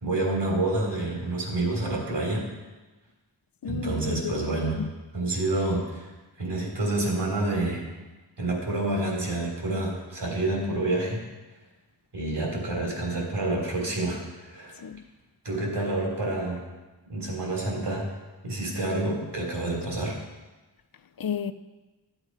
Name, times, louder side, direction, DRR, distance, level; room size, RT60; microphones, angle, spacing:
voice 1, 0.0-2.5 3.7-4.8 5.1-6.1 6.4-7.8 8.4-11.2 12.1-14.8 15.4-16.6 17.1-18.1 18.4-20.2, right 2 dB, 70° right, 3.6 m, -28 dB
voice 2, 3.6-4.4 4.8-4.9 14.8-15.0 21.2-21.5, left 7 dB, 55° left, 0.7 m, -32 dB
13.0 x 8.1 x 4.8 m
wide cardioid pair, 75°, 43 cm